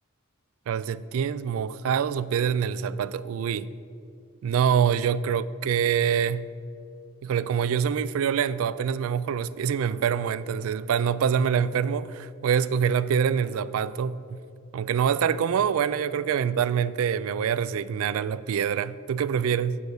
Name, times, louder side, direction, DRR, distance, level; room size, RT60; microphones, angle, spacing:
voice 1, 0.7-3.7 4.4-6.5 7.2-14.4 14.7-19.8, right 7 dB, 70° right, 0.3 m, -25 dB
8.3 x 8.2 x 5.3 m
head